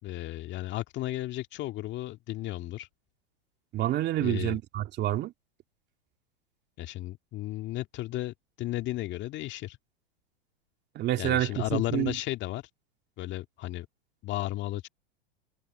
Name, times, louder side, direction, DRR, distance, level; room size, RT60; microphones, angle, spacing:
voice 1, 0.0-2.9 4.2-4.6 6.8-9.8 11.2-12.6 13.2-13.9 14.2-14.9, left 16 dB, 40° left, 2.1 m, -34 dB
voice 2, 3.7-5.3 10.9-12.2, right 13 dB, 35° right, 2.3 m, -28 dB
hypercardioid pair, 110°, 29 cm